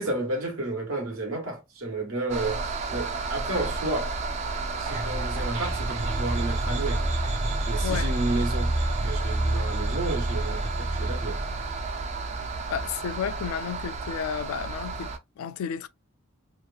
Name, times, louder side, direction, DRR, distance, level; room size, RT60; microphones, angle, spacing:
voice 1, 0.0-4.1 4.7-7.0 7.7-11.4, right 2 dB, 85° right, 1.1 m, -31 dB
breathing time-stretched, 2.3-15.2, right 4 dB, 30° right, 0.3 m, -33 dB
sound 1, 4.9-12.0, right 1 dB, 70° right, 1.1 m, -29 dB
voice 2, 12.7-15.9, left 8 dB, 80° left, 0.3 m, -32 dB
2.9 x 2.3 x 2.4 m
head